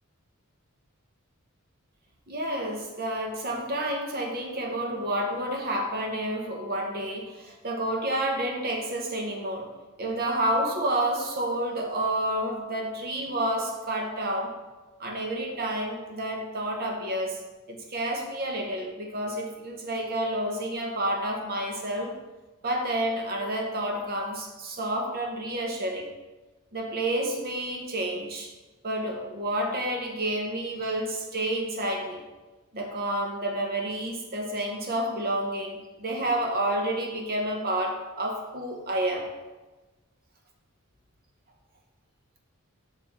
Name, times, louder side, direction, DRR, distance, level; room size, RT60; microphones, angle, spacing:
voice 1, 2.3-9.7 10.0-14.5 15.0-17.4 17.7-22.1 22.6-26.1 26.7-28.5 28.8-32.2 32.7-39.3, right 1 dB, 45° right, 1 dB, 1.0 m, -29 dB
5.8 x 4.5 x 4.6 m, 1.2 s
head